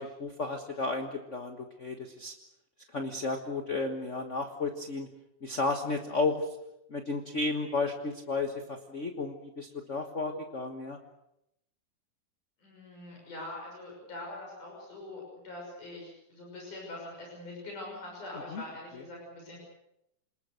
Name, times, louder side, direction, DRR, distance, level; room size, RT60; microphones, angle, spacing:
voice 1, 0.0-2.3 2.9-5.1 5.4-6.5 6.9-11.0 18.5-18.6, left 3 dB, 45° left, 4 dB, 0.9 m, -33 dB
voice 2, 12.6-19.6, left 2 dB, 75° left, -2 dB, 7.8 m, -43 dB
28.5 x 20.5 x 6.6 m, 0.82 s
omnidirectional pair, 3.6 m